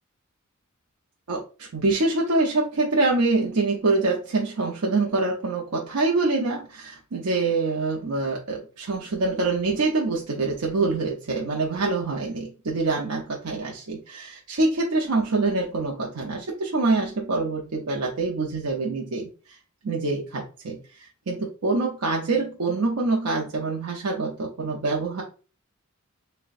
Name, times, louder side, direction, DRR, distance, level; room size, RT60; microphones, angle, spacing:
voice 1, 1.3-19.3 19.8-25.2, right 3 dB, 90° right, -1 dB, 0.7 m, -25 dB
6.5 x 2.2 x 2.5 m, 0.36 s
head